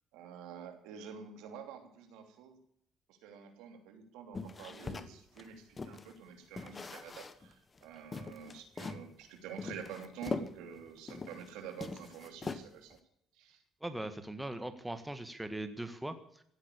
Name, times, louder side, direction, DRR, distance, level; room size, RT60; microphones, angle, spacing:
voice 1, 0.1-2.6 3.1-13.0 13.3-13.6, right 7 dB, 90° right, 5 dB, 3.0 m, -48 dB
sound 1, 4.3-6.1 6.6-7.5 7.8-7.9 8.1-9.1 9.6-11.5 11.8-12.9, left 4 dB, 30° left, 1.4 m, -42 dB
voice 2, 13.8-16.4, right 1 dB, 10° right, 9 dB, 1.8 m, -40 dB
16.0 x 9.2 x 8.5 m, 0.68 s
cardioid pair, 95°, 0 cm